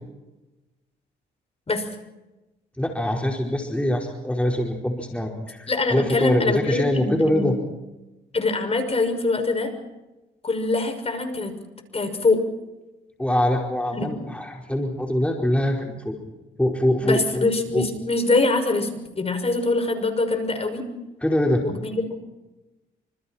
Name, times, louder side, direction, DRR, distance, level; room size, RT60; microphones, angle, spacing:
voice 1, 2.8-7.5 13.2-16.2 16.6-17.5 17.7-17.9 21.2-21.6, left 1 dB, 5° left, 0 dB, 4.8 m, -23 dB
voice 2, 5.7-7.5 8.3-9.7 10.4-11.5 11.9-12.4 13.9-14.1 17.0-18.9 19.2-20.8 21.6-22.1, left 3 dB, 30° left, 6 dB, 6.2 m, -23 dB
29.0 x 27.5 x 4.5 m, 1.0 s
cardioid pair, 90°, 20 cm